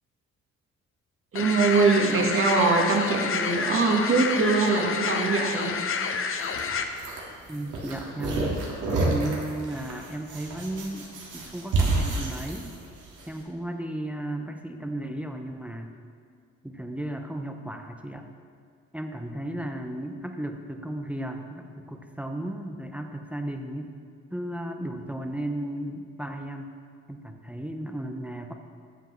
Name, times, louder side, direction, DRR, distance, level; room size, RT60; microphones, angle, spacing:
voice 1, 1.3-5.7, right 4 dB, 45° right, 1 dB, 1.4 m, -22 dB
sound 1, 1.4-6.8, left 5 dB, 45° left, 0.7 m, -29 dB
sound 2, 6.4-13.3, right 2 dB, 85° right, 1.7 m, -29 dB
voice 2, 7.5-8.6 9.0-12.7 13.3-15.9 16.6-18.3 18.9-23.9 24.3-26.7 27.1-28.5, right 1 dB, 5° right, 4 dB, 0.6 m, -34 dB
9.2 x 7.7 x 3.1 m, 2.4 s
cardioid pair, 90°, 30 cm